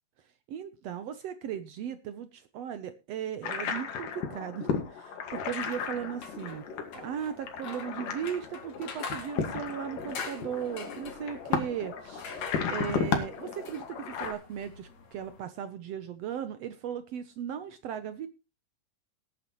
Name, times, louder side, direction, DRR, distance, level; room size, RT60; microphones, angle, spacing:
voice 1, 0.5-6.6 7.0-12.4 12.7-18.3, right 9 dB, 75° right, 11 dB, 1.5 m, -37 dB
sound 1, 3.4-14.3, left 6 dB, 70° left, 3.4 m, -34 dB
sound 2, 5.3-15.4, left 5 dB, 55° left, 3.6 m, -46 dB
19.0 x 9.5 x 3.0 m, 0.28 s
omnidirectional pair, 3.9 m